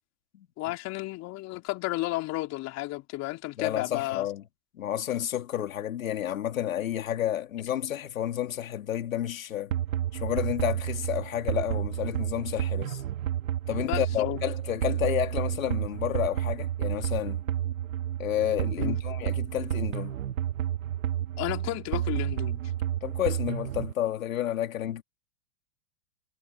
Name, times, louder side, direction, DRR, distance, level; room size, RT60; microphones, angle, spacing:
voice 1, 0.6-4.3 13.8-14.4 18.8-19.0 21.4-22.6, left 19 dB, 40° left, 3.6 m, -32 dB
voice 2, 3.6-4.4 4.8-9.7 10.1-13.0 13.7-17.4 18.2-20.2 23.0-25.0, left 11 dB, 80° left, 3.2 m, -30 dB
sound 1, 9.7-23.9, right 11 dB, 75° right, 2.9 m, -31 dB
hypercardioid pair, 115°, 40 cm